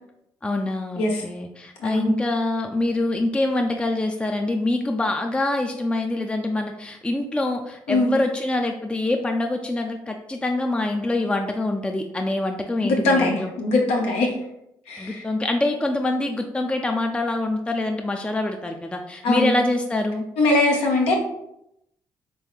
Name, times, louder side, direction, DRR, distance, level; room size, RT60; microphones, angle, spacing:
voice 1, 0.4-13.5 15.0-20.3, left 2 dB, 10° left, 4 dB, 0.5 m, -25 dB
voice 2, 1.8-2.1 7.9-8.1 12.8-14.3 14.9-15.2 19.2-19.5 20.4-21.2, left 2 dB, 75° left, 0 dB, 0.7 m, -21 dB
3.5 x 3.0 x 3.5 m, 0.81 s
hypercardioid pair, 45°, 11 cm